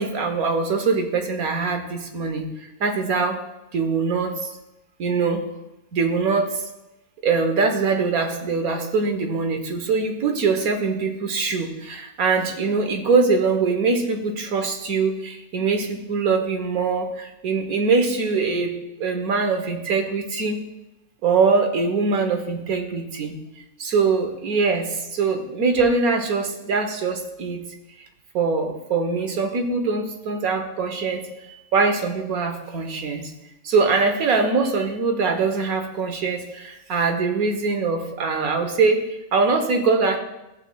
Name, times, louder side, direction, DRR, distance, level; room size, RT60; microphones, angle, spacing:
voice 1, 0.0-3.4 3.7-4.5 5.0-5.4 5.9-6.6 7.2-20.6 21.2-23.4 23.8-27.6 28.3-31.2 31.5-33.3 33.6-40.2, right 4 dB, 75° right, 5 dB, 1.5 m, -23 dB
14.5 x 8.4 x 2.3 m, 0.93 s
omnidirectional pair, 1.5 m